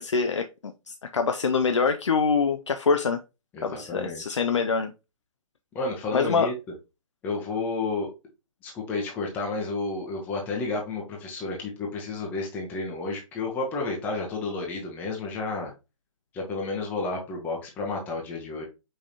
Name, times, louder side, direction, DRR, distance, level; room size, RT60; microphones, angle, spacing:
voice 1, 0.0-3.2 3.6-4.9 6.1-6.5, left 5 dB, 60° left, 7 dB, 0.5 m, -25 dB
voice 2, 3.5-4.2 5.7-6.5 7.2-8.1 8.6-15.7 16.3-18.7, left 3 dB, 10° left, -1 dB, 0.8 m, -31 dB
5.2 x 3.6 x 2.8 m, 0.27 s
figure-of-eight pair, 135°, 18 cm